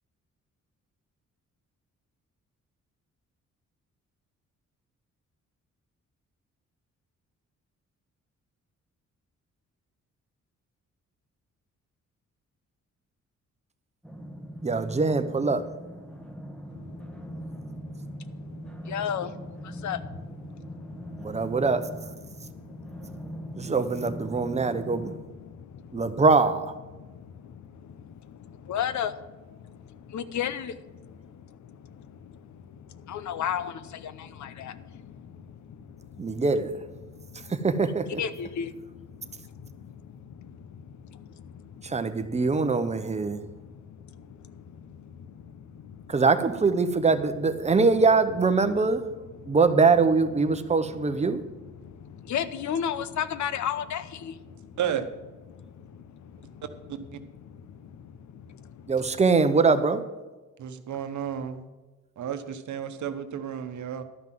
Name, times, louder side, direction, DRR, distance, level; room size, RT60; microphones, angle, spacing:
sound 1, 14.0-25.2, right 1 dB, 5° left, 1.1 m, -41 dB
voice 1, 14.6-15.6 21.2-21.8 23.6-25.1 25.9-26.7 36.2-36.7 37.5-38.2 41.8-43.4 46.1-49.0 49.5-51.4 58.9-60.0, right 4 dB, 20° right, 9 dB, 0.8 m, -23 dB
voice 2, 16.7-21.6 22.2-23.8 24.3-26.2 26.9-36.4 37.0-37.6 38.1-46.2 47.6-47.7 49.4-49.6 50.5-50.9 51.2-54.8 55.5-56.7 57.4-58.9, left 8 dB, 75° left, 13 dB, 0.7 m, -37 dB
voice 3, 60.6-61.7 62.2-64.0, right 8 dB, 75° right, 9 dB, 1.0 m, -32 dB
12.0 x 5.8 x 7.6 m, 1.2 s
wide cardioid pair, 140°, 30 cm